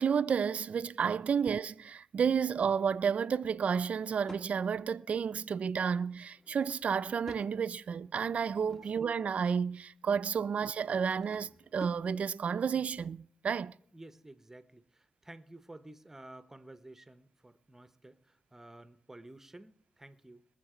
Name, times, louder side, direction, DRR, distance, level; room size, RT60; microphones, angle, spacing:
voice 1, 0.0-13.8, right 6 dB, 60° right, 0.4 m, -31 dB
Drawer open or close / Wood, 3.6-4.5 6.2-7.6 8.1-9.2 10.6-12.1, equal, 15° left, 1.3 m, -52 dB
voice 2, 13.9-20.5, right 1 dB, 15° right, 0.9 m, -52 dB
22.0 x 7.3 x 5.0 m
cardioid pair, 80°, 3 cm